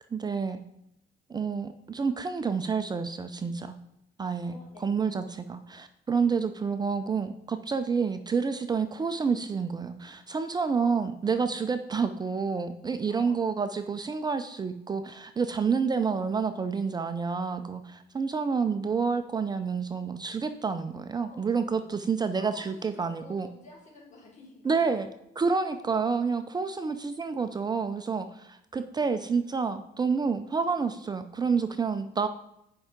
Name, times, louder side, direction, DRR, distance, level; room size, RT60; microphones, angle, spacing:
voice 1, 0.1-0.6 1.3-3.7 4.2-4.5 4.8-23.5 24.6-25.1 25.4-32.3, right 5 dB, 25° right, 8 dB, 0.6 m, -29 dB
voice 2, 4.4-4.9 10.8-10.9 13.1-13.4 21.1-21.5 22.3-25.0 26.7-26.9, left 2 dB, 45° left, -3 dB, 4.3 m, -51 dB
9.9 x 5.7 x 5.1 m, 0.81 s
cardioid pair, 110°, 17 cm